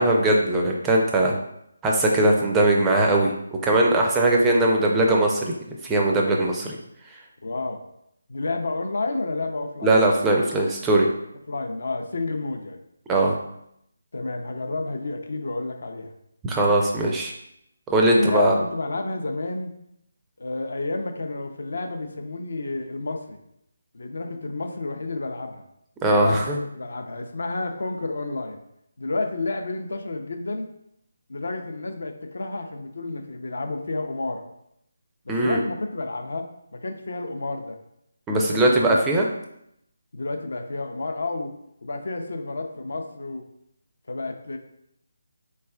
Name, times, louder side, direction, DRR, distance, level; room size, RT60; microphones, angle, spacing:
voice 1, 0.0-1.3 1.8-3.3 3.6-6.8 9.8-11.1 13.1-13.3 16.4-17.3 17.9-18.5 26.0-26.6 35.3-35.6 38.3-39.3, right 1 dB, 10° right, -1 dB, 0.4 m, -20 dB
voice 2, 7.4-7.8 8.3-10.0 11.5-12.8 14.1-16.1 18.2-19.7 20.4-23.4 23.9-25.6 26.2-28.6 29.0-30.7 31.3-34.4 35.3-36.5 36.7-37.8 38.3-39.0 40.1-41.5 41.8-43.4 44.1-44.6, left 2 dB, 60° left, 5 dB, 0.5 m, -30 dB
4.1 x 3.2 x 2.2 m, 0.77 s
figure-of-eight pair, 150°, 0 cm